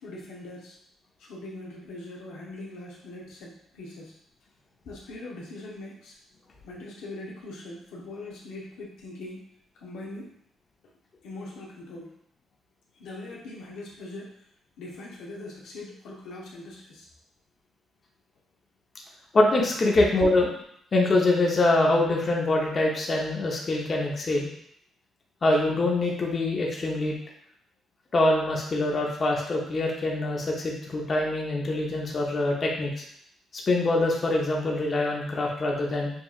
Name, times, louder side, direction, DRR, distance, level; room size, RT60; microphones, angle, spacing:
voice 1, 0.0-0.8 1.2-4.2 4.8-6.1 6.6-9.5 9.8-10.3 11.2-12.1 13.0-14.4 14.8-17.1, left 2 dB, 90° left, -3 dB, 0.9 m, -41 dB
voice 2, 19.3-20.5 20.9-24.5 25.4-27.1 28.1-33.0 33.7-36.1, left 2 dB, 40° left, -2 dB, 0.8 m, -24 dB
5.3 x 2.5 x 2.4 m, 0.68 s
cardioid pair, 90°, 0 cm